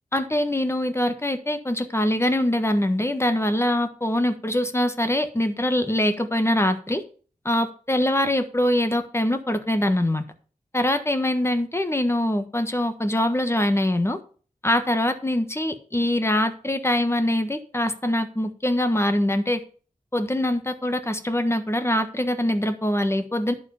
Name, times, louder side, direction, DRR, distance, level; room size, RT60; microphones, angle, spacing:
voice 1, 0.1-7.0 7.4-10.2 10.7-14.2 14.6-19.6 20.1-23.5, left 1 dB, 20° left, 8 dB, 1.4 m, -23 dB
11.0 x 4.9 x 7.0 m, 0.41 s
wide cardioid pair, 60°, 14 cm